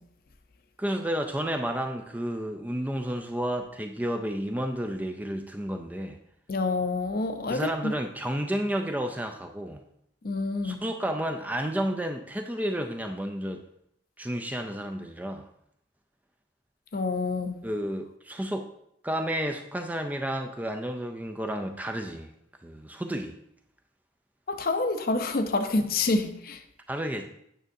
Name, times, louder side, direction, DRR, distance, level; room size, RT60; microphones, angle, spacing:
voice 1, 0.8-6.2 7.5-9.8 10.6-13.6 14.2-15.5 17.6-18.7 19.0-22.3 22.6-23.4 26.9-27.3, equal, 10° right, 0.3 m, -31 dB
voice 2, 6.5-7.9 10.2-10.8 16.9-17.6 24.5-26.6, left 3 dB, 50° left, 0.6 m, -27 dB
8.9 x 6.3 x 2.6 m
head